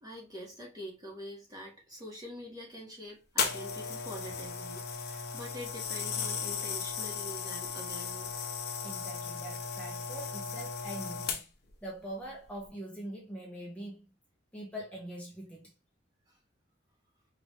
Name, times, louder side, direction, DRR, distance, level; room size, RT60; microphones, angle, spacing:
voice 1, 0.0-8.5 16.3-16.4, equal, 20° right, 1.6 m, -45 dB
sound 1, 3.4-11.7 12.4-12.6, left 6 dB, 55° left, 1.0 m, -36 dB
voice 2, 8.8-11.4 11.8-14.1 14.5-15.7, right 1 dB, 5° left, 1.3 m, -43 dB
5.3 x 3.0 x 3.2 m
head